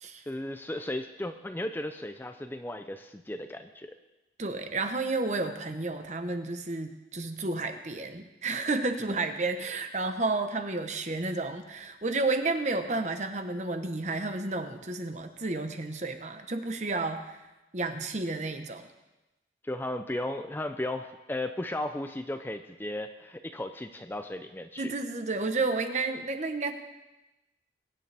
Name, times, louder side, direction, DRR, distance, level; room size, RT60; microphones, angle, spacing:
voice 1, 0.3-3.9 9.1-9.2 19.6-24.9, left 1 dB, 10° left, 7 dB, 0.4 m, -35 dB
voice 2, 4.4-17.4 17.7-18.9 24.8-26.7, right 3 dB, 40° right, 7 dB, 1.0 m, -31 dB
22.5 x 9.9 x 3.4 m, 1.0 s
head